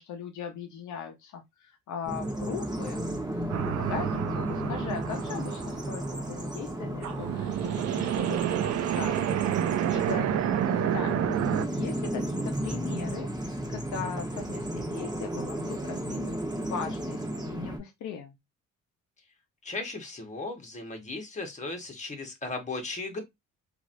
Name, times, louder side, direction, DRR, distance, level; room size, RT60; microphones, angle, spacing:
voice 1, 0.0-9.6 9.9-11.3 11.7-16.3 16.7-18.4, left 7 dB, 75° left, 0.7 m, -39 dB
Bird vocalization bird call bird song, 2.0-17.8, right 1 dB, 15° right, 1.1 m, -34 dB
sound 1, 3.5-6.7 7.0-11.7, right 11 dB, 60° right, 0.5 m, -29 dB
voice 2, 19.6-23.2, left 3 dB, 25° left, 1.2 m, -36 dB
2.9 x 2.6 x 2.6 m
cardioid pair, 90°, 30 cm